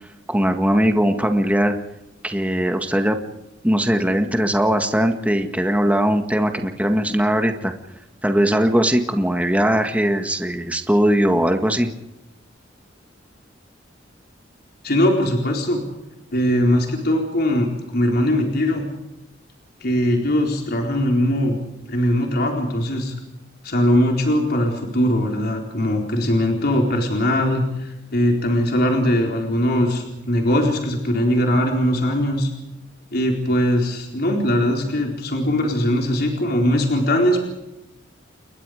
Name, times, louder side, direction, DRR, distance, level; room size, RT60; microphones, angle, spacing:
voice 1, 0.3-1.8 2.2-3.2 3.6-7.7 8.2-11.9, equal, 10° right, 5 dB, 1.8 m, -19 dB
voice 2, 14.8-15.8 16.3-18.8 19.8-21.6 21.9-23.1 23.6-32.5 33.1-37.5, left 1 dB, 55° left, 1 dB, 4.2 m, -20 dB
30.0 x 22.0 x 5.1 m, 0.92 s
head